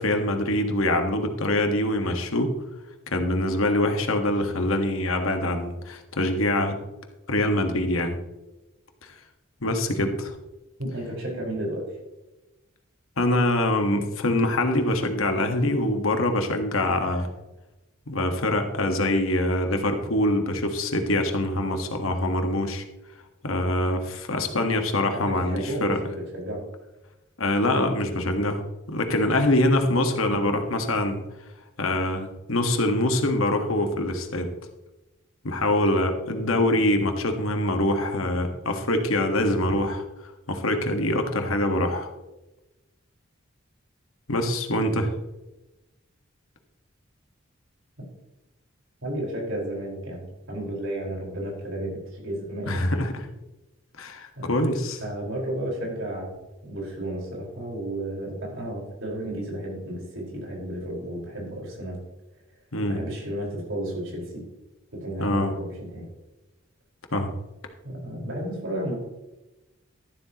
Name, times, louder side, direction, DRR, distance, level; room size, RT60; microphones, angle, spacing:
voice 1, 0.0-2.5 3.1-6.8 7.3-8.2 9.6-10.3 13.2-17.3 18.1-22.8 23.4-26.0 27.4-28.6 28.9-31.2 31.8-34.5 35.4-40.0 40.5-42.1 44.3-45.1 52.7-53.3 54.0-55.0 62.7-63.0 65.2-65.5 67.1-67.3, left 1 dB, 90° left, 5 dB, 1.5 m, -24 dB
voice 2, 10.8-11.9 25.2-26.6 30.3-30.5 36.4-36.6 49.0-52.8 54.4-54.5 55.0-56.4 56.6-62.0 62.9-64.5 64.9-66.1 67.8-69.1, right 1 dB, 70° right, -2 dB, 4.8 m, -32 dB
13.0 x 11.5 x 3.0 m, 1.0 s
head